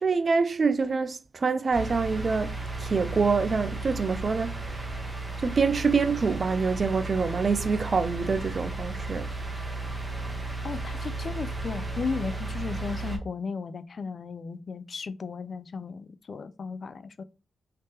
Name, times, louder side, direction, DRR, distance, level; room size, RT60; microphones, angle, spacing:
voice 1, 0.0-4.8 5.4-9.3, right 4 dB, 50° right, 0.4 m, -26 dB
sound 1, 1.7-13.2, right 2 dB, 20° right, 0.9 m, -34 dB
voice 2, 10.6-17.2, left 5 dB, 55° left, 0.4 m, -35 dB
3.2 x 2.8 x 3.3 m
cardioid pair, 70°, 0 cm